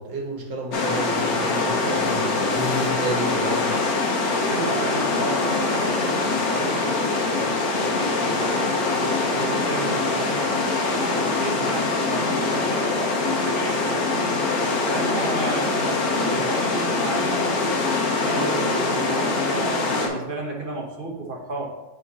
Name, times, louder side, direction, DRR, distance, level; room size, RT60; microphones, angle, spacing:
voice 1, 0.0-3.7, equal, 75° right, 1 dB, 1.9 m, -30 dB
sound 1, 0.7-20.1, left 3 dB, 55° left, 1.4 m, -23 dB
voice 2, 4.5-8.8 9.3-14.4 14.9-17.6 18.2-21.7, right 2 dB, 40° right, 0 dB, 0.9 m, -33 dB
6.5 x 5.1 x 4.1 m, 1.1 s
omnidirectional pair, 2.0 m